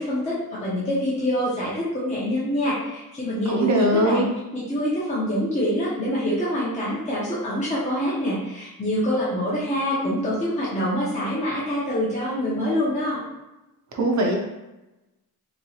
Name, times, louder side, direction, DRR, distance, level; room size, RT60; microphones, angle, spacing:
voice 1, 0.0-4.3 4.5-13.2, equal, 20° left, -8 dB, 0.6 m, -25 dB
voice 2, 3.5-4.3 13.9-14.3, right 1 dB, 50° right, 0 dB, 0.5 m, -20 dB
3.0 x 2.8 x 2.7 m, 1.0 s
wide cardioid pair, 180°, 37 cm